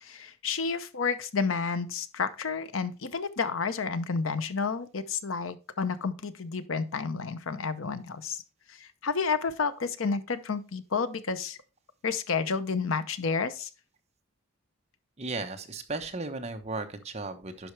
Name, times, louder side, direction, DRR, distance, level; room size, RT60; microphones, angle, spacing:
voice 1, 0.0-8.4 8.7-11.6 12.0-13.7, left 5 dB, 65° left, 12 dB, 0.7 m, -30 dB
voice 2, 15.2-17.7, right 3 dB, 30° right, 6 dB, 0.9 m, -35 dB
10.0 x 5.7 x 3.2 m, 0.33 s
head